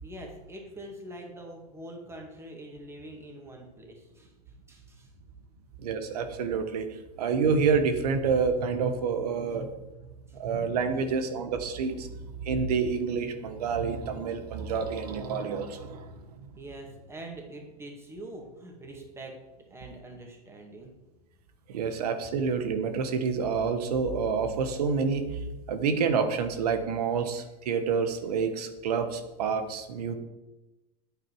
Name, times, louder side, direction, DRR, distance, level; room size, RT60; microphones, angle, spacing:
voice 1, 0.0-4.3 4.7-5.1 10.3-10.4 16.6-19.3 19.7-20.9, right 1 dB, 15° right, 1 dB, 2.3 m, -44 dB
voice 2, 5.8-6.9 7.2-9.7 10.3-12.1 12.4-16.1 16.4-16.5 21.7-25.4 25.7-30.1, right 5 dB, 80° right, 8 dB, 1.4 m, -28 dB
9.2 x 8.5 x 4.9 m, 1.0 s
supercardioid pair, 120°, 20 cm